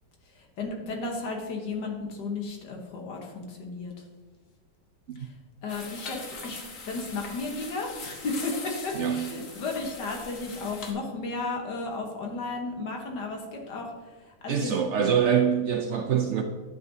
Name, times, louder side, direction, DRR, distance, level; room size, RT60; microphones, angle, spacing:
voice 1, 0.4-3.9 5.2-5.3 5.6-13.9 14.3-14.8, left 3 dB, 80° left, 1 dB, 1.8 m, -34 dB
sound 1, 5.7-10.9, left 4 dB, 55° left, 1.4 m, -41 dB
voice 2, 8.9-9.3 14.5-16.4, right 7 dB, 80° right, 5 dB, 0.6 m, -25 dB
10.5 x 7.4 x 2.7 m, 1.4 s
omnidirectional pair, 1.8 m